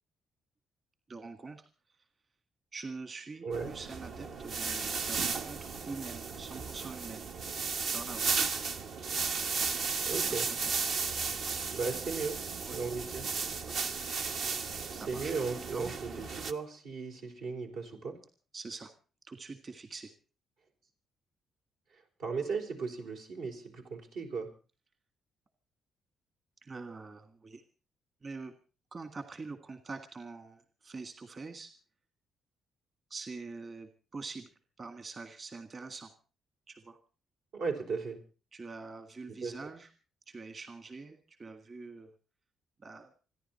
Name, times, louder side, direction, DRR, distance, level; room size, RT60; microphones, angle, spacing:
voice 1, 1.1-1.7 2.7-7.3 7.9-8.3 10.2-10.8 12.6-12.8 13.6-13.8 14.9-16.3 18.5-18.9 19.2-20.1 26.6-27.6 28.2-28.6 28.9-31.7 33.1-36.1 36.7-37.0 38.5-39.9 40.3-42.1 42.8-43.1, right 4 dB, 40° right, 8 dB, 1.8 m, -45 dB
sound 1, 3.5-16.5, right 5 dB, 65° right, 1.2 m, -35 dB
voice 2, 10.1-10.5 11.7-12.4 12.7-13.3 15.1-15.9 16.4-18.2 22.2-24.5 37.5-38.2 39.4-39.6, right 4 dB, 85° right, 1 dB, 4.4 m, -36 dB
27.5 x 10.5 x 4.4 m, 0.36 s
cardioid pair, 90°, 0 cm